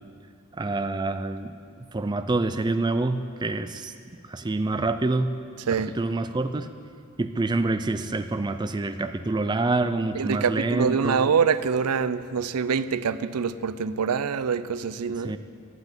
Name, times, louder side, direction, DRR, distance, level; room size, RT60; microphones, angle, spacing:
voice 1, 0.5-1.6 1.9-3.9 4.2-5.4 5.8-6.7 7.2-11.3 15.1-15.4, right 2 dB, 20° right, 0.4 m, -27 dB
voice 2, 10.2-15.3, right 6 dB, 90° right, 0.5 m, -25 dB
11.5 x 9.1 x 9.0 m
head